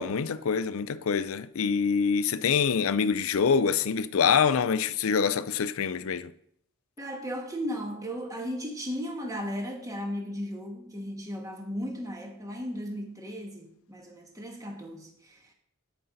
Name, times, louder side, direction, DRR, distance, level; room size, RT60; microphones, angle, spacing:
voice 1, 0.0-6.3, left 6 dB, 65° left, 0.5 m, -25 dB
voice 2, 7.0-15.5, equal, 15° right, 1.4 m, -36 dB
13.5 x 5.4 x 4.0 m
head